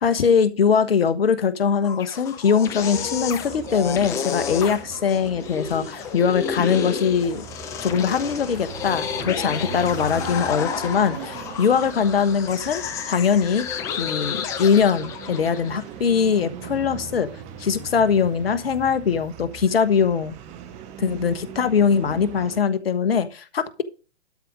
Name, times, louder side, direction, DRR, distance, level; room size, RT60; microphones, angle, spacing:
voice 1, 0.0-7.4 7.8-13.7 14.0-17.3 17.6-20.4 21.0-23.8, left 6 dB, 60° left, 13 dB, 1.4 m, -21 dB
sound 1, 1.7-15.8, left 7 dB, 10° left, 0.5 m, -31 dB
sound 2, 2.8-22.6, right 7 dB, 20° right, 1.2 m, -40 dB
12.5 x 5.0 x 6.2 m, 0.33 s
figure-of-eight pair, 135°, 33 cm